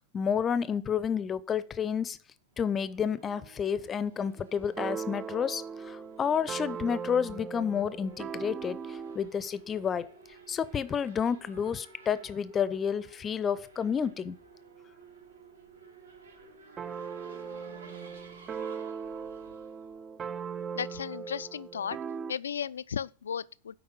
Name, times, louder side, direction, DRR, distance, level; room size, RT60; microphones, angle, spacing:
voice 1, 0.1-2.2 2.6-10.1 10.5-14.4, left 7 dB, 20° left, 0.6 m, -30 dB
Race car auto racing / Accelerating revving vroom, 2.5-20.7, right 3 dB, 70° right, 2.1 m, -54 dB
sound 1, 4.6-9.3 16.8-22.3, right 6 dB, 25° right, 0.3 m, -39 dB
voice 2, 20.7-22.0 22.3-23.8, left 7 dB, 70° left, 0.3 m, -35 dB
8.0 x 5.3 x 6.0 m
figure-of-eight pair, 90°, 0 cm